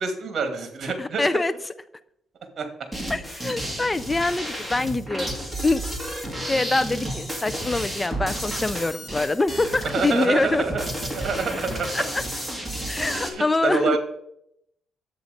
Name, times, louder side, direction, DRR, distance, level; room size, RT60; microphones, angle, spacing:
voice 1, 0.0-1.2 2.6-2.7 9.8-12.0 13.1-14.0, right 4 dB, 50° right, 7 dB, 2.3 m, -27 dB
voice 2, 1.0-1.7 3.1-5.3 5.6-5.8 6.4-10.6 11.9-12.2 12.9-14.0, left 2 dB, 20° left, 15 dB, 0.5 m, -24 dB
sound 1, 2.9-13.3, right 1 dB, 5° right, 2.5 m, -32 dB
10.5 x 8.3 x 5.2 m, 0.77 s
cardioid pair, 90°, 0 cm